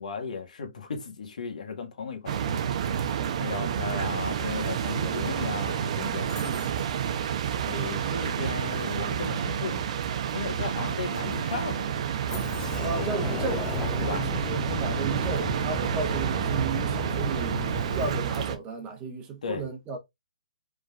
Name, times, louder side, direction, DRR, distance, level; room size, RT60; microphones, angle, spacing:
voice 1, 0.0-3.0 3.3-6.9 7.7-9.9 10.3-12.1 14.0-14.3 19.4-19.6, left 5 dB, 65° left, 1.6 m, -35 dB
sound 1, 2.3-18.6, right 8 dB, 50° right, 0.8 m, -29 dB
sound 2, 6.3-7.0 10.9-11.0 11.2-11.6 12.3-12.9, left 9 dB, 40° left, 1.4 m, -46 dB
voice 2, 6.4-6.7 12.8-20.0, right 4 dB, 20° right, 1.1 m, -34 dB
Sliding door, 12.3-18.2, left 4 dB, 10° left, 0.7 m, -34 dB
5.2 x 3.7 x 2.4 m
hypercardioid pair, 140°, 4 cm